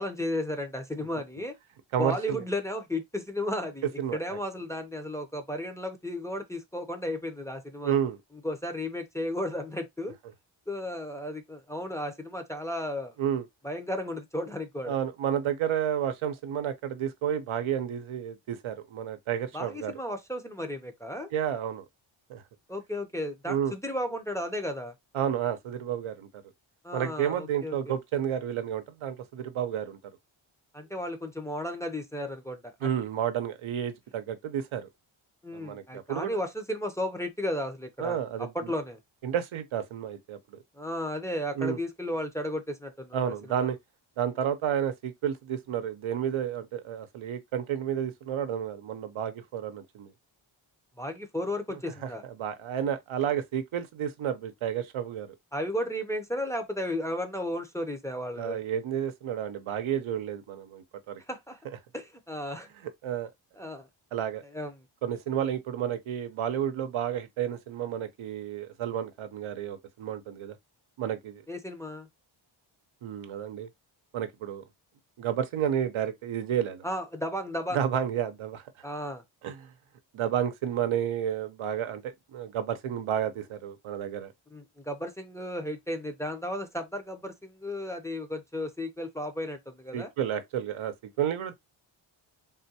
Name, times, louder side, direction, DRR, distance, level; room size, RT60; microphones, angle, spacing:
voice 1, 0.0-1.5 2.0-8.0 8.4-10.1 10.7-13.1 13.6-15.0 19.5-21.3 22.7-24.9 26.8-28.0 30.7-32.9 35.4-39.0 40.8-43.7 51.0-52.2 55.5-58.6 61.3-61.6 61.9-62.7 63.6-63.9 64.5-64.7 71.5-72.1 76.8-77.8 78.8-79.2 84.5-90.1, left 1 dB, 5° left, 0.6 m, -34 dB
voice 2, 1.9-2.4 4.0-4.4 7.8-8.2 13.2-13.4 14.9-19.9 21.3-21.8 22.3-22.4 23.5-23.7 25.1-26.3 26.9-30.0 32.8-34.9 35.5-36.4 38.0-38.7 39.2-40.6 41.6-41.8 43.1-43.8 44.2-50.1 51.7-52.1 52.4-55.3 58.4-61.2 63.0-63.3 64.1-64.4 65.0-70.6 71.0-71.4 73.0-73.7 74.1-74.6 75.2-76.8 77.7-78.6 79.4-79.7 80.1-84.3 89.9-91.5, right 9 dB, 80° right, 0.7 m, -31 dB
3.7 x 2.2 x 2.8 m
cardioid pair, 80°, 48 cm